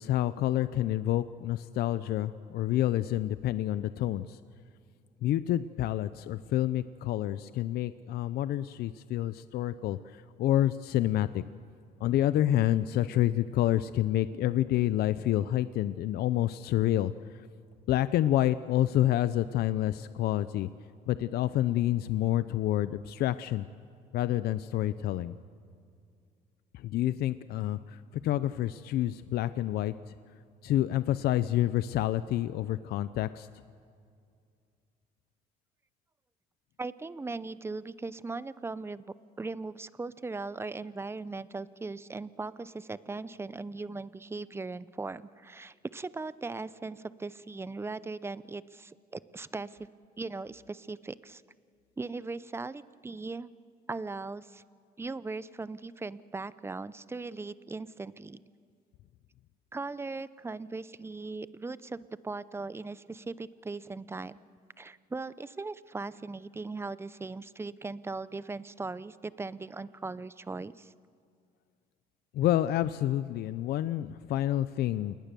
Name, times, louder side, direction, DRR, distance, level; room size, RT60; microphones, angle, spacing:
voice 1, 0.0-4.4 5.2-11.4 12.0-17.1 17.9-20.7 21.1-23.6 24.1-25.4 26.7-29.9 30.6-33.5 72.3-75.2, left 13 dB, 70° left, 14 dB, 0.6 m, -28 dB
voice 2, 36.8-39.1 39.4-49.8 50.2-51.4 52.0-53.5 53.9-54.6 55.0-58.4 59.7-64.4 64.8-70.9, right 3 dB, 15° right, 16 dB, 0.6 m, -39 dB
28.5 x 20.0 x 6.9 m, 2.3 s
cardioid pair, 110°, 17 cm